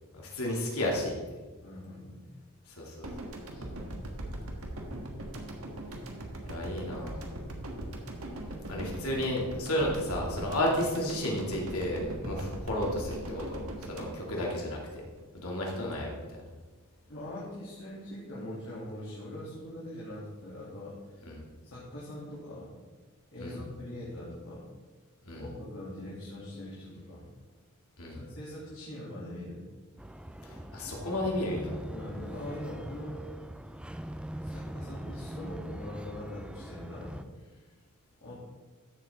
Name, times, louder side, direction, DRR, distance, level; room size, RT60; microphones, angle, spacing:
voice 1, 0.1-1.2 2.7-3.1 6.4-7.3 8.7-15.0 15.3-16.3 21.3-21.4 23.4-23.6 25.2-25.5 28.0-28.2 30.4-31.7, left 1 dB, 75° left, -2 dB, 2.5 m, -32 dB
voice 2, 1.6-2.3 3.5-4.0 12.2-12.5 17.1-21.2 21.6-22.8 23.3-24.6 25.4-27.3 28.1-29.7 31.9-33.2 34.4-37.4 38.2-38.3, left 1 dB, 60° left, -8 dB, 2.7 m, -42 dB
sound 1, 3.0-15.2, right 1 dB, 70° right, 1.5 m, -40 dB
sound 2, 30.0-37.2, right 1 dB, 5° right, 0.3 m, -42 dB
14.0 x 7.4 x 3.7 m, 1.3 s
head